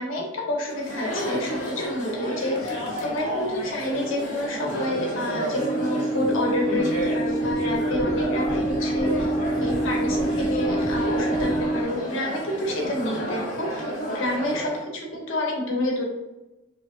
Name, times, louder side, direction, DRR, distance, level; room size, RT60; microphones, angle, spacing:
voice 1, 0.0-6.9 7.1-9.3 9.6-16.0, left 1 dB, 80° left, -1 dB, 1.1 m, -29 dB
Chatter, 0.7-14.8, equal, 40° left, 1.2 m, -31 dB
sound 1, 5.6-11.8, right 1 dB, 25° left, 0.4 m, -26 dB
4.0 x 3.3 x 2.5 m, 1.0 s
head